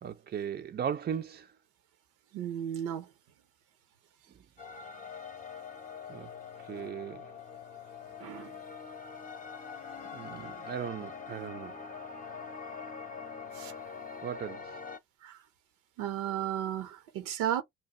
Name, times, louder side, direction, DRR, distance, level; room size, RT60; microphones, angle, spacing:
voice 1, 0.0-1.5 6.1-6.3 6.7-7.3 10.1-11.8 14.2-14.8, right 8 dB, 35° right, 0.5 m, -37 dB
voice 2, 2.3-3.1 6.8-6.9 8.2-8.5 13.5-13.7 15.2-15.4 16.0-17.6, right 10 dB, 75° right, 0.7 m, -34 dB
sound 1, 4.6-15.0, left 6 dB, 25° left, 0.7 m, -44 dB
2.7 x 2.3 x 4.1 m
hypercardioid pair, 50°, 31 cm